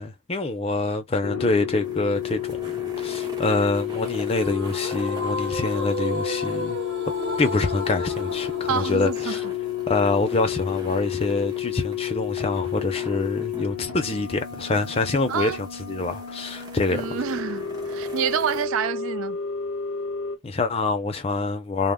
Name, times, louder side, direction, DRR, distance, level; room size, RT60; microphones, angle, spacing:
voice 1, 0.0-6.8 7.4-9.4 9.9-17.1 20.4-21.9, left 3 dB, 30° left, 0.5 m, -26 dB
sound 1, 1.2-20.4, left 10 dB, 90° left, 0.7 m, -31 dB
sound 2, 1.6-18.7, right 2 dB, 20° right, 0.6 m, -44 dB
sound 3, 4.3-11.4, right 1 dB, 50° right, 0.8 m, -34 dB
voice 2, 8.7-9.4 15.3-15.6 16.9-19.4, right 7 dB, 80° right, 0.3 m, -28 dB
2.2 x 2.0 x 3.5 m
head